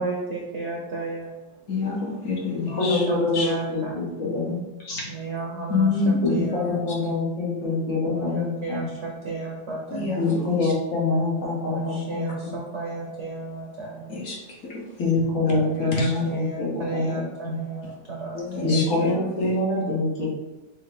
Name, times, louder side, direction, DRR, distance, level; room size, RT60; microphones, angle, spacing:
voice 1, 0.0-1.3 2.6-4.0 5.1-6.8 8.1-10.1 11.7-14.2 15.5-18.8, right 3 dB, 65° right, -2 dB, 0.7 m, -33 dB
voice 2, 1.7-3.0 3.3-3.5 5.7-6.5 9.9-10.7 14.1-15.1 15.5-15.6 15.9-16.1 18.3-19.1 19.4-19.6, left 4 dB, 60° left, -1 dB, 0.8 m, -28 dB
voice 3, 2.5-5.0 6.2-8.8 10.2-12.3 15.0-17.5 18.6-20.3, left 3 dB, 75° left, -6 dB, 2.3 m, -25 dB
6.6 x 2.3 x 3.4 m, 1.1 s
omnidirectional pair, 2.1 m